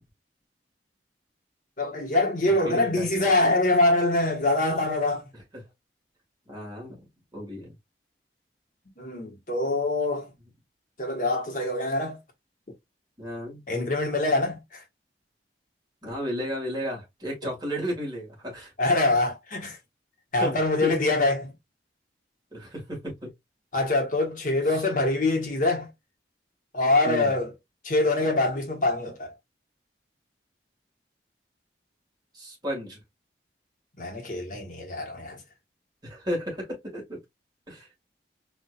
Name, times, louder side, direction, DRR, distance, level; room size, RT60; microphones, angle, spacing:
voice 1, 1.8-5.2 9.0-10.3 11.0-12.2 13.7-14.8 18.8-19.8 20.3-21.5 23.7-25.9 26.7-27.5 27.8-29.3 34.0-35.4, left 2 dB, 50° left, 1.4 m, -24 dB
voice 2, 2.4-3.3 5.5-5.6 6.5-7.0 7.3-7.7 13.2-13.7 16.0-18.7 20.4-20.9 22.5-23.3 24.7-24.8 27.0-27.3 32.3-33.0 36.0-37.2 37.7-37.9, equal, 25° right, 2.0 m, -33 dB
4.3 x 2.7 x 2.4 m
head